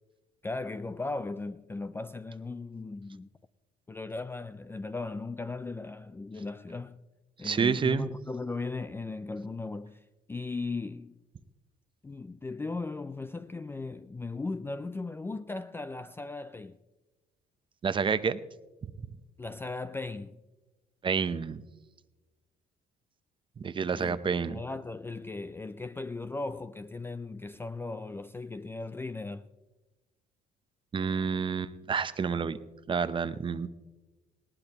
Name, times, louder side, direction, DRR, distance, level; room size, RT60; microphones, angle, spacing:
voice 1, 0.4-3.3 3.9-7.0 7.4-10.0 10.3-11.2 12.0-16.8 19.4-20.4 23.9-24.2 24.4-29.5, left 3 dB, 15° left, 0.4 m, -37 dB
voice 2, 7.4-8.1 17.8-18.4 21.0-21.6 23.6-24.6 30.9-32.6 32.9-33.7, right 6 dB, 30° right, 0.7 m, -29 dB
20.0 x 18.0 x 3.0 m
cardioid pair, 110°, 17 cm